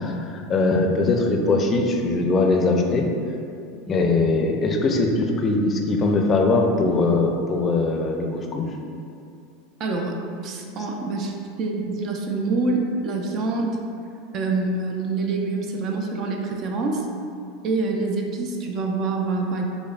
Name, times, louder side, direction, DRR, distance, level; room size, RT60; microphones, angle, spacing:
voice 1, 0.0-3.1 3.9-8.6, left 3 dB, 35° left, 2 dB, 0.4 m, -21 dB
voice 2, 9.8-13.8 14.3-17.1 17.6-19.7, right 3 dB, 50° right, 2 dB, 0.4 m, -26 dB
6.0 x 2.1 x 2.4 m, 2.5 s
hypercardioid pair, 95°, 0 cm